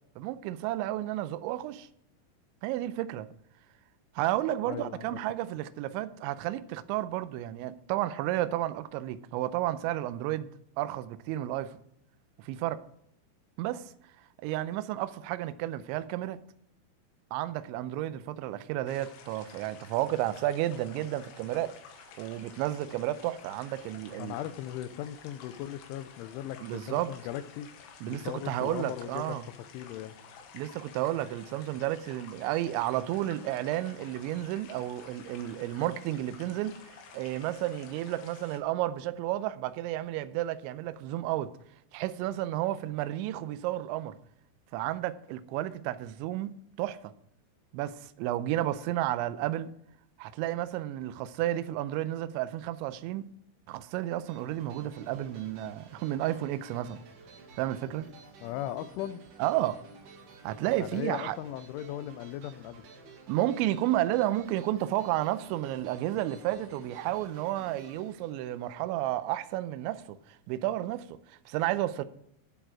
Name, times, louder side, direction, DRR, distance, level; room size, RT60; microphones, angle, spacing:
voice 1, 0.2-1.9 2.6-3.3 4.2-10.5 10.8-11.7 12.4-12.8 13.6-13.9 14.4-16.4 17.3-21.7 22.2-24.4 26.6-27.1 28.0-29.4 30.5-41.5 41.9-44.2 44.7-47.1 47.7-49.7 50.2-53.3 53.7-57.0 57.6-58.1 59.4-59.8 60.4-61.4 63.3-70.2 70.5-72.0, right 14 dB, 80° right, 2.9 m, -32 dB
voice 2, 4.7-5.2 24.2-27.7 28.1-29.4 29.7-30.2 58.4-59.2 60.8-62.9, left 12 dB, 90° left, 3.1 m, -38 dB
sound 1, 18.9-38.6, left 6 dB, 70° left, 3.4 m, -52 dB
sound 2, 54.3-69.1, right 4 dB, 60° right, 3.8 m, -52 dB
12.0 x 7.7 x 4.7 m
omnidirectional pair, 5.5 m